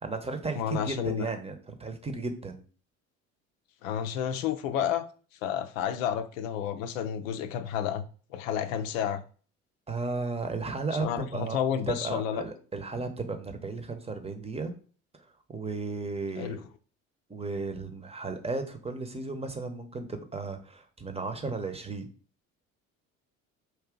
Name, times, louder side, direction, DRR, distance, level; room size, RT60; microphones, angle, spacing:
voice 1, 0.0-2.6 9.9-11.6 11.9-14.7 15.5-16.6 17.3-22.1, right 3 dB, 15° right, 0.9 m, -34 dB
voice 2, 0.5-1.3 3.8-5.1 5.4-8.0 8.3-9.2 11.0-12.4 16.4-16.6, left 9 dB, 75° left, 0.6 m, -30 dB
4.7 x 2.8 x 3.7 m
hypercardioid pair, 60°, 41 cm